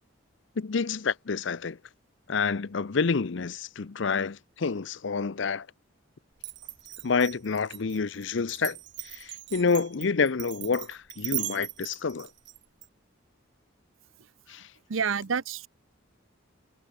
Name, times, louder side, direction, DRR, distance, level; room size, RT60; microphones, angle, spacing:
voice 1, 0.6-1.8 2.3-5.7 7.0-8.8 9.0-12.3 14.5-14.7, left 5 dB, 60° left, 0.6 m, -28 dB
Glass, 6.4-12.9, right 18 dB, 60° right, 1.6 m, -38 dB
voice 2, 14.9-15.7, right 6 dB, 80° right, 0.7 m, -28 dB
head